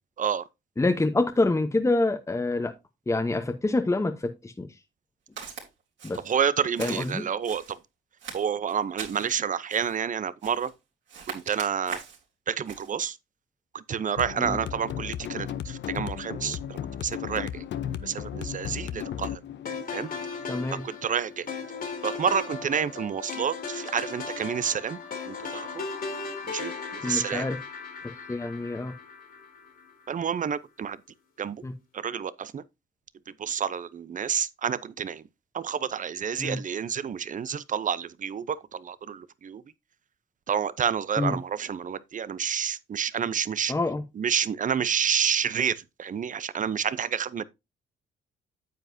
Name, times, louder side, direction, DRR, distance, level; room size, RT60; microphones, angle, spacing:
voice 1, 0.8-2.7 3.1-4.7 6.0-6.2 6.8-7.3 14.4-14.6 20.5-20.8 27.0-27.6 28.0-28.9 31.6-31.7 36.4-36.6 41.2-41.3 43.7-44.0, left 2 dB, 15° left, 1.0 m, -26 dB
Walk footsteps, 5.4-5.7 6.0-6.4 6.8-7.8 8.2-9.3 9.7-10.0 10.4-10.8 11.1-12.2 12.7-12.9, right 6 dB, 65° right, 4.0 m, -40 dB
voice 2, 6.2-7.8 8.3-10.7 11.3-12.0 12.5-13.2 13.7-17.6 18.0-19.4 19.9-20.1 20.8-21.5 22.0-25.0 25.3-25.8 26.5-27.4 30.1-31.0 31.4-31.6 31.9-32.6 33.4-35.2 35.5-39.6 40.5-43.7 44.2-47.4, right 7 dB, 40° right, 0.7 m, -29 dB
sound 1, 14.2-21.1, left 9 dB, 65° left, 0.8 m, -35 dB
sound 2, 19.7-29.9, left 5 dB, 50° left, 2.5 m, -37 dB
9.4 x 7.7 x 2.7 m
cardioid pair, 90°, 20 cm